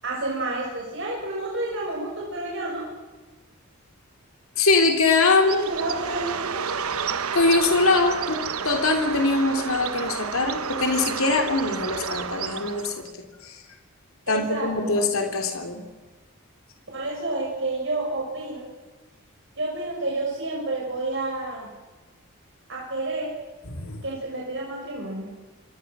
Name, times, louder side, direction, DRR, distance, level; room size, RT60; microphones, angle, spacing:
voice 1, 0.0-2.8 5.3-6.6 14.3-14.9 16.9-18.7 19.6-21.7 22.7-23.3 24.0-25.3, right 2 dB, 60° right, -3 dB, 6.7 m, -29 dB
voice 2, 4.6-5.5 7.3-13.1 13.4-13.6 14.3-15.8 23.6-24.0, left 3 dB, 75° left, 4 dB, 3.3 m, -22 dB
Bird, 5.4-13.1, right 6 dB, 90° right, 1.1 m, -31 dB
28.0 x 23.5 x 6.3 m, 1.3 s
head